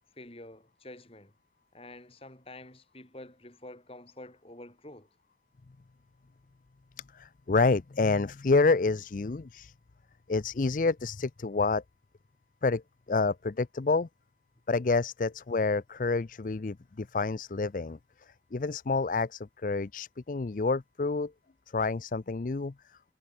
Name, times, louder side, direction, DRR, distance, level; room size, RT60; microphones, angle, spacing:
voice 1, 0.2-1.3 1.7-5.1, left 1 dB, 35° left, 4.3 m, -48 dB
voice 2, 7.1-9.7 10.3-11.8 12.6-12.8 13.1-14.1 14.7-18.0 18.5-21.3 21.7-22.7, left 3 dB, 50° left, 0.5 m, -28 dB
head